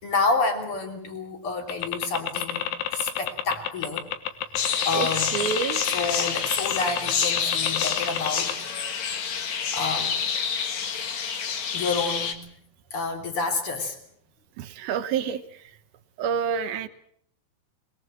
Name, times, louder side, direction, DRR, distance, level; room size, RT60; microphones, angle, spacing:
voice 1, 0.0-4.1 4.9-5.4 5.9-8.7 9.3-10.2 11.7-12.6 12.9-14.0, left 3 dB, 35° left, 4 dB, 3.5 m, -29 dB
sound 1, 1.7-8.5, left 10 dB, 70° left, 3.2 m, -28 dB
sound 2, 4.6-12.3, left 6 dB, 55° left, 2.2 m, -28 dB
voice 2, 4.9-5.8 14.6-15.6 16.2-16.9, right 7 dB, 70° right, 9 dB, 2.7 m, -28 dB
22.5 x 21.5 x 7.6 m, 0.63 s
omnidirectional pair, 5.3 m